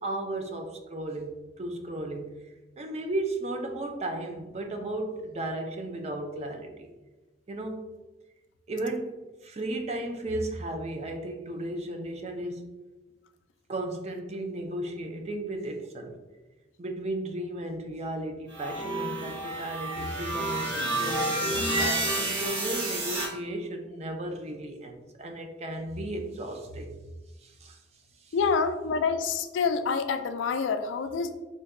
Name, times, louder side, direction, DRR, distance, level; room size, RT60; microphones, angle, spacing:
voice 1, 0.0-2.3 2.8-6.9 7.5-7.8 8.7-9.1 9.4-12.7 13.7-16.2 16.8-26.9 27.4-27.8 28.3-28.4, right 1 dB, 35° right, 4 dB, 0.4 m, -35 dB
sound 1, 18.5-23.3, right 2 dB, 75° right, 0.9 m, -30 dB
voice 2, 28.3-31.3, left 5 dB, 85° left, 9 dB, 0.4 m, -27 dB
3.8 x 2.2 x 3.5 m, 1.1 s
head